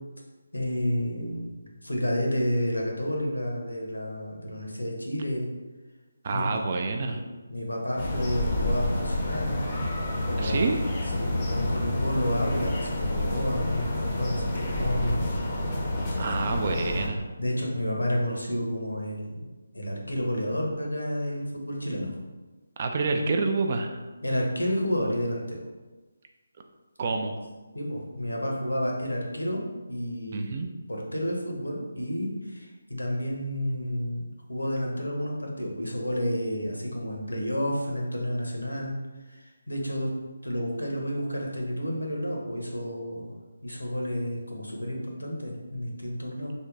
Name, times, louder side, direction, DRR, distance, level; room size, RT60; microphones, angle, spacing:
voice 1, 0.5-1.6 1.8-5.5 6.3-6.6 7.0-7.2 7.5-9.6 10.2-10.7 11.1-15.3 16.2-16.3 17.4-19.5 19.7-22.1 24.2-25.6 27.7-30.5 30.9-39.0 39.3-40.1 40.4-46.5, equal, 80° left, -1 dB, 0.9 m, -30 dB
voice 2, 6.2-7.2 10.4-10.8 16.2-17.2 22.8-24.0 27.0-27.5 30.3-30.7, right 3 dB, 35° right, 4 dB, 0.3 m, -28 dB
sound 1, 8.0-17.1, left 1 dB, 20° left, 0.6 m, -29 dB
3.5 x 2.2 x 3.8 m, 1.2 s
figure-of-eight pair, 150°, 0 cm